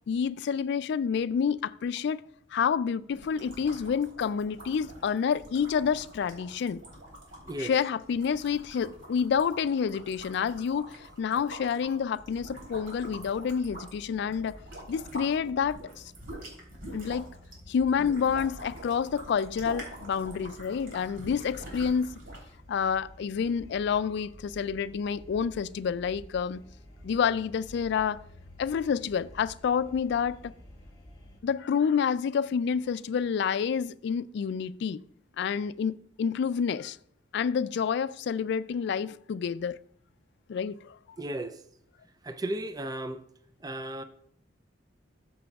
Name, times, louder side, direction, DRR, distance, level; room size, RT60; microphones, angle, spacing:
voice 1, 0.1-2.2 2.5-6.8 7.6-14.6 14.9-16.0 16.9-17.3 17.7-22.1 22.7-26.6 27.0-28.2 28.6-30.5 31.4-35.0 35.4-37.0 37.3-39.8 40.5-41.0, left 6 dB, 65° left, 0.3 m, -28 dB
sound 1, 3.1-15.3 15.6-22.5, equal, 75° right, 3.4 m, -45 dB
sound 2, 12.2-31.4, equal, 25° left, 2.6 m, -51 dB
voice 2, 41.2-41.6 42.2-43.2 43.6-44.0, right 1 dB, 20° right, 0.4 m, -34 dB
13.5 x 6.8 x 2.3 m
head